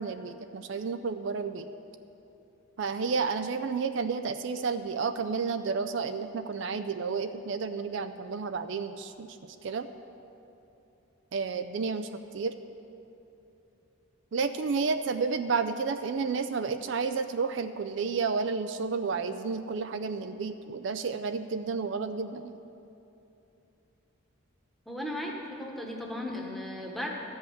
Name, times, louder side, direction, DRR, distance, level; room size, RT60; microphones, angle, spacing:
voice 1, 0.0-1.7 2.8-9.4 9.6-9.9 11.3-12.5 14.3-22.5, right 5 dB, 60° right, 9 dB, 0.4 m, -31 dB
voice 2, 24.9-27.1, left 1 dB, ahead, -1 dB, 1.1 m, -36 dB
13.5 x 5.5 x 8.4 m, 2.9 s
head